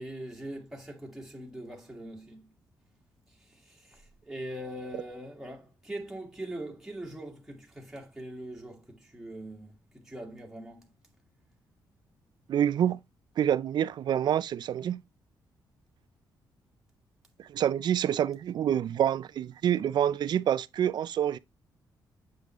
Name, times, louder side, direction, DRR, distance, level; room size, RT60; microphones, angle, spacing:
voice 1, 0.0-2.5 3.3-10.9, right 1 dB, 5° right, 1.7 m, -42 dB
voice 2, 12.5-13.0 13.4-15.0 17.4-21.4, right 10 dB, 65° right, 0.4 m, -27 dB
8.0 x 5.3 x 3.0 m
cardioid pair, 105°, 8 cm